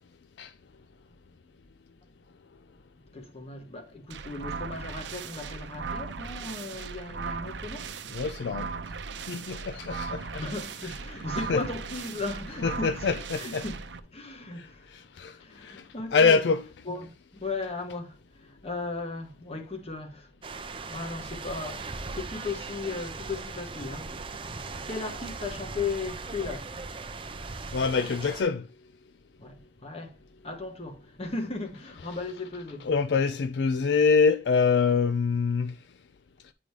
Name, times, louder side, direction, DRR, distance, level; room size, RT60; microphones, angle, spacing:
voice 1, 3.1-7.9 10.4-13.8 14.1-15.0 15.4-16.5 16.8-20.3 20.8-24.2 24.9-26.8 29.4-30.2 30.4-32.9, left 3 dB, 35° left, 1.3 m, -36 dB
sound 1, 4.1-14.0, right 5 dB, 75° right, 0.6 m, -38 dB
voice 2, 8.1-8.7 9.3-10.4 11.5-11.6 12.6-13.6 15.2-15.4 15.6-15.8 16.1-16.6 27.7-28.6 32.9-35.7, left 5 dB, 70° left, 0.4 m, -24 dB
sound 2, 20.4-28.4, right 3 dB, 30° right, 0.6 m, -39 dB
9.4 x 3.8 x 3.2 m
head